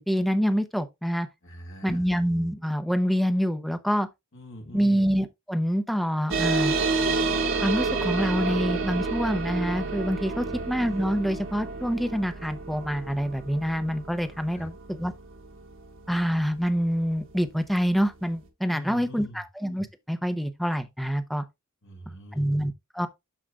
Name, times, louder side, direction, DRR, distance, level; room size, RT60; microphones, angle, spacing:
voice 1, 0.0-1.3 1.8-4.1 4.7-6.8 7.6-15.1 16.1-21.4 22.3-23.1, equal, ahead, 0.7 m, -26 dB
voice 2, 1.4-2.0 4.3-5.0 10.4-10.6 14.5-14.7 18.7-19.4 21.8-22.5, equal, 60° left, 1.8 m, -42 dB
sound 1, 6.3-17.2, right 4 dB, 60° right, 1.5 m, -30 dB
12.5 x 4.9 x 2.3 m
head